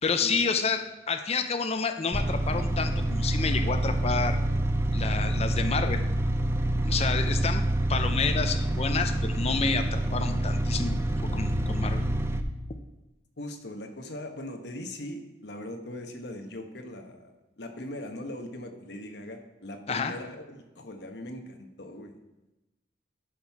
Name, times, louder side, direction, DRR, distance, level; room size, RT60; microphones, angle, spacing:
voice 1, 0.0-4.4 4.9-6.0 6.8-10.9 11.3-12.0 19.9-20.1, left 5 dB, 35° left, 7 dB, 0.6 m, -29 dB
sound 1, 2.1-12.4, right 1 dB, 15° right, 0.5 m, -27 dB
voice 2, 13.4-22.1, left 1 dB, 65° left, 5 dB, 1.2 m, -40 dB
11.5 x 5.7 x 4.7 m, 1.0 s
head